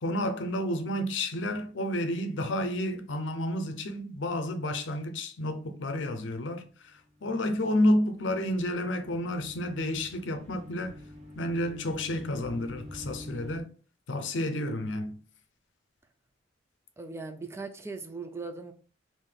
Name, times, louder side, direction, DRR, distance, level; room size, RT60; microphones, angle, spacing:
voice 1, 0.0-11.0 11.3-13.7 14.1-15.2, left 1 dB, 70° left, 0.6 m, -30 dB
sound 1, 7.0-13.6, left 1 dB, 35° right, 0.9 m, -47 dB
voice 2, 17.0-18.7, right 3 dB, 15° right, 0.3 m, -39 dB
3.7 x 2.6 x 3.3 m
head